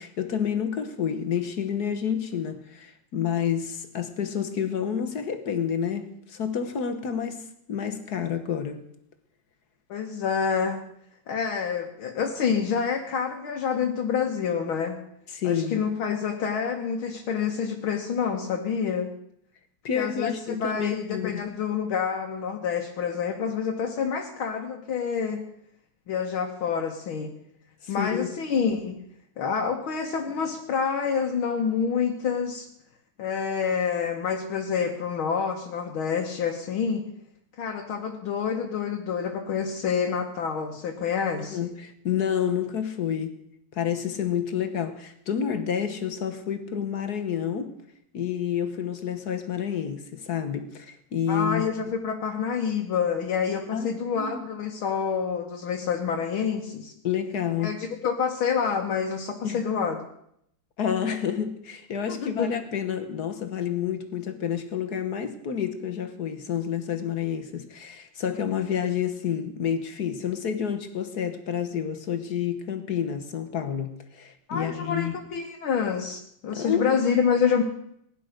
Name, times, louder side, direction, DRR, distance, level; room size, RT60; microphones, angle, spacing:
voice 1, 0.0-8.8 15.3-15.8 19.8-21.5 27.8-28.3 41.5-43.3 43.7-47.7 48.1-51.7 53.7-54.4 57.0-57.7 59.4-59.6 60.8-75.2 76.5-76.9, left 8 dB, 55° left, 1.4 m, -29 dB
voice 2, 9.9-10.8 11.3-15.0 15.4-19.1 20.0-25.4 26.1-27.3 27.9-29.0 29.4-32.7 33.2-37.0 37.6-41.7 51.3-56.9 57.6-60.0 62.1-62.5 74.5-77.6, left 6 dB, 70° left, 2.0 m, -27 dB
16.5 x 10.5 x 6.5 m
omnidirectional pair, 2.4 m